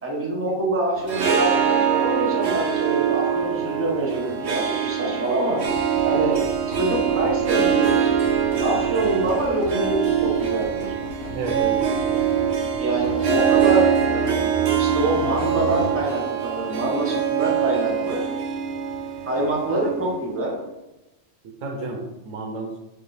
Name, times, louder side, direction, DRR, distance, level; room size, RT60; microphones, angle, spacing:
voice 1, 0.0-5.6 6.0-6.3 6.8-8.1 8.6-10.0 10.2-11.0 12.8-14.3 14.8-18.2 19.2-20.6, right 2 dB, 15° right, -2 dB, 0.6 m, -25 dB
Harp, 1.0-20.3, right 8 dB, 65° right, 0.8 m, -23 dB
sound 1, 5.6-16.0, left 1 dB, 65° left, 0.9 m, -36 dB
voice 2, 11.3-12.3 21.6-22.8, right 3 dB, 90° right, 4 dB, 1.0 m, -31 dB
5.2 x 2.0 x 3.2 m, 0.98 s
omnidirectional pair, 1.3 m